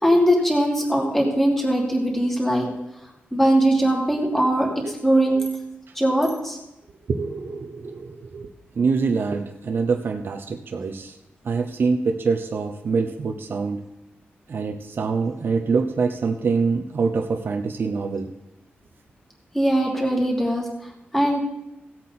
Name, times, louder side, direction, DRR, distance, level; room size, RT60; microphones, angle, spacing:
voice 1, 0.0-2.7 3.3-4.7 5.0-5.5 5.9-6.6 19.5-20.6 21.1-21.4, right 1 dB, 10° left, -1 dB, 3.0 m, -20 dB
voice 2, 7.1-11.2 11.4-13.8 14.5-18.3, right 4 dB, 60° right, 5 dB, 0.9 m, -25 dB
16.5 x 8.4 x 4.3 m, 0.90 s
wide cardioid pair, 125°, 4 cm